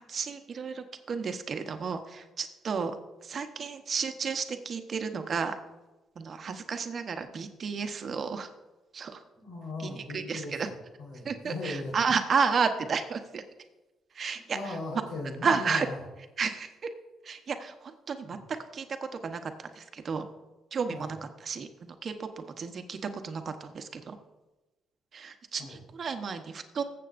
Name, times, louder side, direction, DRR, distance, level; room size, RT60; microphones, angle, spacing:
voice 1, 0.0-3.0 3.2-5.6 6.2-8.5 8.9-9.2 9.8-10.7 11.2-13.4 14.1-14.8 15.4-15.9 16.4-16.9 17.2-18.4 18.7-20.2 20.7-24.2 25.1-26.8, right 5 dB, 50° right, 7 dB, 1.0 m, -32 dB
voice 2, 9.4-10.7 11.0-11.9 14.5-16.0 18.3-18.4 20.9-21.1 25.6-25.8, left 2 dB, 85° left, -1 dB, 4.1 m, -38 dB
20.5 x 7.7 x 2.6 m, 1.1 s
cardioid pair, 90°, 0 cm